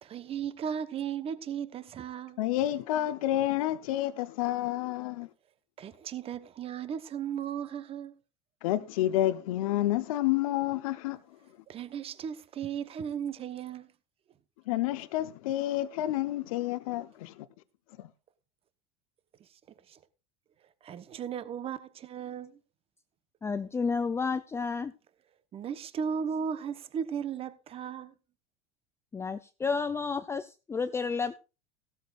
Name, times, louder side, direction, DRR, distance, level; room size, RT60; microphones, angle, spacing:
voice 1, 0.0-2.4 5.8-8.2 11.7-13.9 19.4-19.5 19.9-20.0 20.8-22.6 25.5-28.1, right 7 dB, 35° right, 1.1 m, -36 dB
voice 2, 2.4-5.3 8.6-11.2 14.7-17.5 18.0-18.1, left 14 dB, 80° left, 0.9 m, -29 dB
voice 3, 23.4-24.9 29.1-31.4, left 5 dB, 15° left, 0.5 m, -31 dB
15.5 x 13.0 x 2.5 m
supercardioid pair, 115°, 18 cm